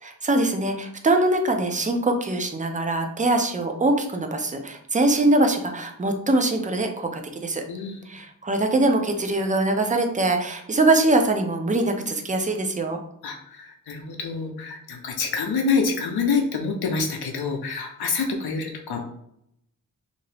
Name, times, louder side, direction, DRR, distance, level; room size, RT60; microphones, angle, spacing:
voice 1, 0.0-7.6 8.1-13.0, right 2 dB, 20° right, 5 dB, 0.4 m, -23 dB
voice 2, 7.7-8.1 13.2-19.0, left 4 dB, 80° left, 2 dB, 0.6 m, -27 dB
2.8 x 2.5 x 3.2 m, 0.74 s
wide cardioid pair, 120°, 37 cm